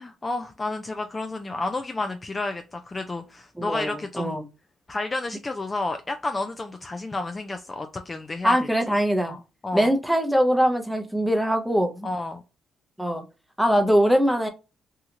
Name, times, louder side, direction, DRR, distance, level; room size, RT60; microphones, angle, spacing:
voice 1, 0.0-4.4 4.9-8.7 9.2-9.9 12.0-12.4, left 2 dB, 25° left, 0.3 m, -31 dB
voice 2, 3.6-4.5 8.4-9.4 9.7-12.1 13.0-13.2 13.6-14.5, equal, ahead, 0.7 m, -22 dB
2.9 x 2.3 x 2.8 m
cardioid pair, 90°, 0 cm